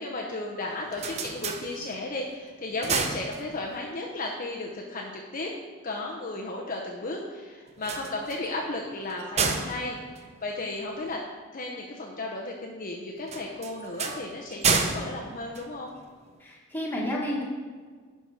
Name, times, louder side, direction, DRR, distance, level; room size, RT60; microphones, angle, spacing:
voice 1, 0.0-5.5 5.8-11.2 11.5-15.9, left 2 dB, 40° left, -1 dB, 0.7 m, -34 dB
sound 1, 0.7-2.2 2.6-3.9 7.7-11.2 13.2-16.3, right 5 dB, 30° right, 0.6 m, -31 dB
voice 2, 16.4-17.4, left 1 dB, 10° left, -4 dB, 1.5 m, -30 dB
11.0 x 4.3 x 4.8 m, 1.5 s
head